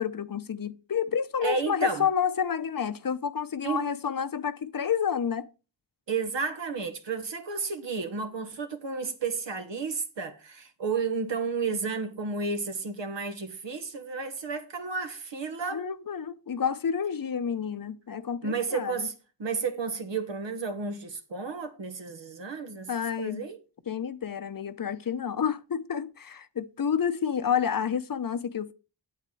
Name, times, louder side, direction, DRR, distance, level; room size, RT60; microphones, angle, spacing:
voice 1, 0.0-5.5 15.7-19.1 22.9-23.4 23.9-28.7, left 7 dB, 50° left, 0.8 m, -29 dB
voice 2, 1.4-2.1 3.6-3.9 6.1-15.9 18.4-19.1 19.4-22.9 23.2-23.6, right 4 dB, 70° right, 1.6 m, -32 dB
8.4 x 8.1 x 4.6 m
cardioid pair, 60°, 45 cm